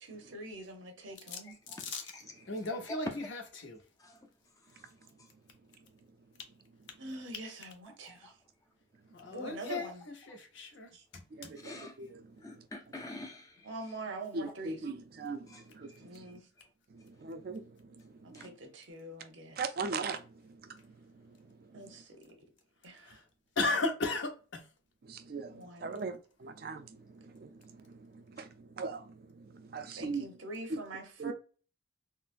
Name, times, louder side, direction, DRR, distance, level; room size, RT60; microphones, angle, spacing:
voice 1, 0.0-1.6 7.0-8.4 9.3-10.0 10.9-11.0 13.6-14.9 16.0-16.5 18.2-19.7 21.7-22.4 22.8-23.2 25.5-26.0 30.0-31.3, right 2 dB, 80° right, 0.8 m, -44 dB
voice 2, 1.4-3.2 4.0-4.3 4.7-4.9 5.2-5.3 7.9-8.3 9.8-9.9 10.3-10.4 11.5-12.1 12.4-13.7 15.5-16.1 18.3-18.5 28.4-28.5, left 2 dB, 15° left, 0.4 m, -47 dB
voice 3, 2.5-3.8 9.1-9.9 10.3-10.9 23.0-23.2 23.6-24.6, left 3 dB, 70° left, 0.7 m, -34 dB
voice 4, 11.3-12.1 14.3-16.3 16.9-17.6 18.0-18.4 19.6-20.2 20.4-20.8 25.1-25.5 25.8-30.3 30.7-30.8 31.2-31.3, right 4 dB, 50° right, 0.4 m, -40 dB
3.8 x 2.0 x 2.5 m
head